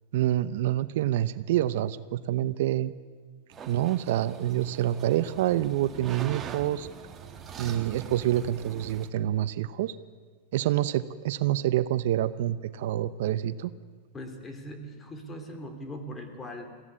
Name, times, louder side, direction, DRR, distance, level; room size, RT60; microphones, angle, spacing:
voice 1, 0.1-2.9 3.7-6.9 7.6-9.9 10.5-13.7, right 13 dB, 70° right, 14 dB, 0.8 m, -27 dB
sound 1, 3.5-9.1, right 7 dB, 25° right, 1.7 m, -43 dB
voice 2, 14.1-16.7, equal, 15° left, 6 dB, 3.1 m, -40 dB
22.0 x 16.0 x 9.8 m, 1.5 s
supercardioid pair, 140°, 0 cm